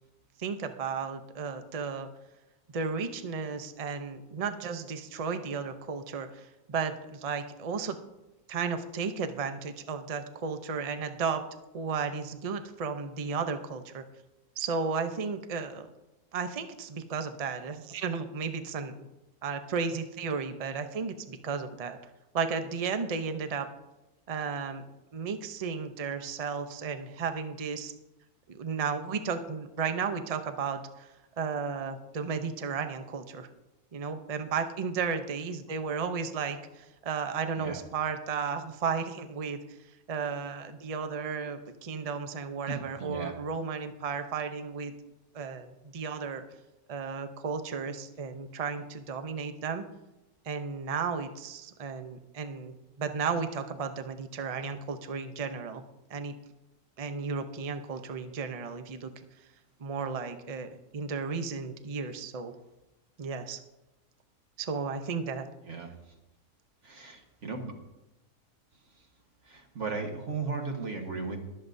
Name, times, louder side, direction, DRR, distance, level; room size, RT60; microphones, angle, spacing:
voice 1, 0.4-2.1 2.7-8.0 8.5-11.4 11.7-14.0 14.6-15.9 16.3-18.9 19.4-22.0 22.3-23.7 24.3-24.8 25.1-27.9 28.5-31.1 31.4-33.5 33.9-39.6 40.1-44.9 45.3-46.4 46.9-49.9 50.4-56.3 57.0-59.1 59.8-62.5 63.2-63.6 64.6-65.5, right 5 dB, 75° right, 8 dB, 0.3 m, -34 dB
voice 2, 42.7-43.3 65.6-65.9 66.8-67.7 69.4-71.4, right 4 dB, 50° right, 3 dB, 1.6 m, -36 dB
22.0 x 7.6 x 2.6 m, 0.99 s
omnidirectional pair, 1.7 m